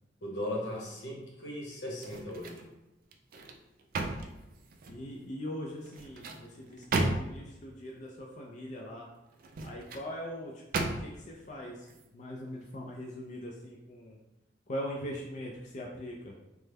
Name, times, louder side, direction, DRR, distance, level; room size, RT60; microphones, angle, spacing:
voice 1, 0.2-2.6, left 1 dB, 85° left, -2 dB, 0.9 m, -37 dB
sound 1, 1.9-2.7 3.1-5.1 5.8-7.5 9.3-10.1 10.7-11.3 11.8-12.0, right 2 dB, 55° right, 0.3 m, -35 dB
voice 2, 4.9-9.1 9.6-11.8 12.1-14.2 14.7-16.3, equal, 45° left, -1 dB, 0.4 m, -41 dB
3.2 x 2.1 x 3.3 m, 0.93 s
head